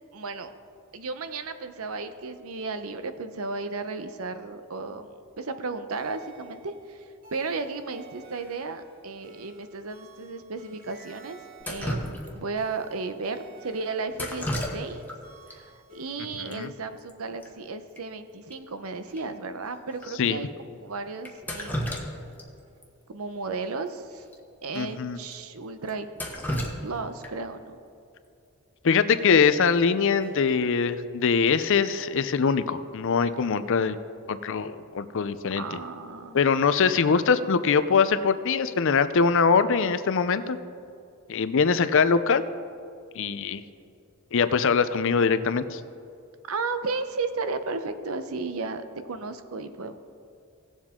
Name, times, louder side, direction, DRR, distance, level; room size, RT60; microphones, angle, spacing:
voice 1, 0.1-0.5 0.9-11.4 11.6-15.0 15.5-21.9 23.1-24.2 24.6-26.1 26.6-27.8 35.6-36.4 44.6-44.8 46.5-50.0, right 4 dB, 75° right, 10 dB, 0.7 m, -34 dB
sound 1, 5.9-16.6, right 1 dB, 40° right, 2.5 m, -52 dB
Drip, 11.6-12.6 14.1-15.2 15.5-15.6 16.5-16.6 16.9-17.1 17.4-17.5 18.0-18.1 18.5-18.6 19.2-19.3 20.0-20.1 21.2-22.4 22.8-22.9 24.2-24.3 24.7-24.8 25.3-25.4 25.9-27.5 29.5-29.8 30.2-30.6, equal, 10° left, 1.1 m, -33 dB
voice 2, 24.8-25.2 28.8-34.0 34.3-35.6 36.3-40.6 41.3-42.4 43.2-43.6 44.3-45.8, left 5 dB, 60° left, 12 dB, 0.5 m, -23 dB
17.5 x 7.3 x 3.7 m, 2.4 s
head